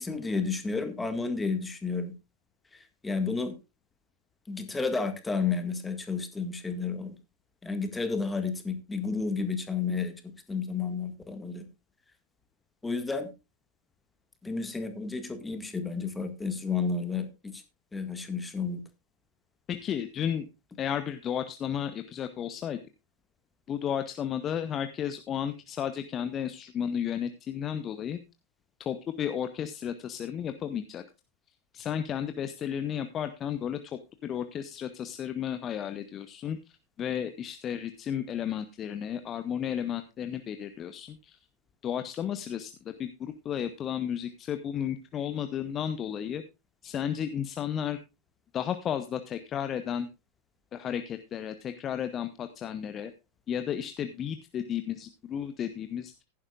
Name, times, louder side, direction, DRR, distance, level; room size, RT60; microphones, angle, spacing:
voice 1, 0.0-2.1 3.0-3.6 4.5-7.2 7.6-10.1 10.5-11.7 12.8-13.3 14.4-17.6 17.9-18.8, left 4 dB, 10° left, 8 dB, 1.9 m, -31 dB
voice 2, 19.7-20.4 20.8-22.8 23.7-28.2 28.8-31.0 31.7-33.8 34.2-36.6 37.0-41.4 41.8-46.4 46.8-48.0 48.5-50.1 50.7-53.1 53.5-56.1, left 9 dB, 30° left, 10 dB, 0.8 m, -33 dB
15.0 x 11.0 x 2.5 m, 0.26 s
figure-of-eight pair, 90°, 0 cm